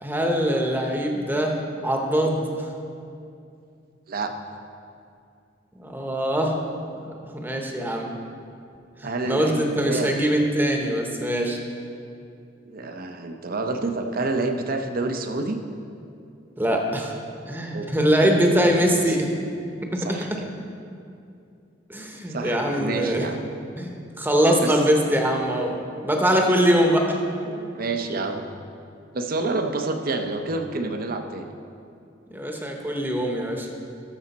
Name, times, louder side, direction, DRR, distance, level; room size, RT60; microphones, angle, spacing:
voice 1, 0.0-1.5 1.8-2.7 5.8-6.5 7.0-8.1 9.2-11.6 16.6-17.1 17.4-19.3 19.9-20.4 21.9-23.2 23.8-27.2 32.3-33.7, equal, 10° right, 2 dB, 0.9 m, -23 dB
voice 2, 9.0-10.2 12.7-15.6 17.7-19.2 20.0-20.5 22.3-23.5 24.6-24.7 27.4-28.4 29.1-31.5, right 3 dB, 50° right, 6 dB, 0.7 m, -29 dB
13.5 x 6.3 x 4.2 m, 2.5 s
head